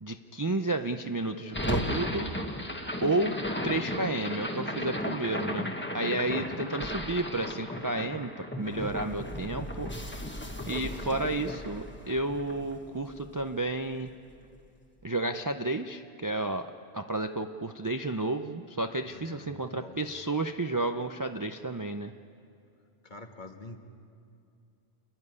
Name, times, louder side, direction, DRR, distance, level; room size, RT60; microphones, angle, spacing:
voice 1, 0.0-2.3 3.0-3.4 3.6-5.7 5.9-10.3 10.7-14.1 15.0-22.1, right 2 dB, 25° right, 6 dB, 0.4 m, -32 dB
sound 1, 1.5-13.7, left 1 dB, 10° left, 1.3 m, -35 dB
voice 2, 6.2-6.6 19.1-20.1 23.0-23.8, left 2 dB, 50° left, 4 dB, 1.5 m, -47 dB
28.0 x 11.0 x 9.6 m, 2.5 s
omnidirectional pair, 1.1 m